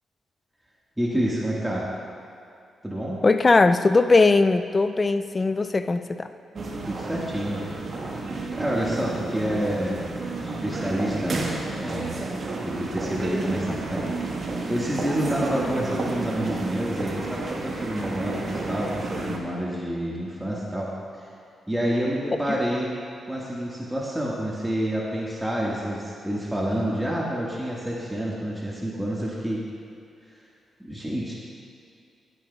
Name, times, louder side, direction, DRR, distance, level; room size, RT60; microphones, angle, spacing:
voice 1, 1.0-1.9 2.8-3.2 6.9-7.6 8.6-10.0 10.4-12.2 12.6-14.1 14.7-21.2 21.7-22.9 23.3-29.6 30.8-31.3, equal, 10° right, -5 dB, 1.7 m, -28 dB
voice 2, 3.2-6.3, left 3 dB, 35° left, 11 dB, 0.4 m, -19 dB
sound 1, 6.6-19.4, right 3 dB, 55° right, 1.4 m, -31 dB
16.0 x 9.3 x 2.3 m, 2.5 s
supercardioid pair, 50°, 0 cm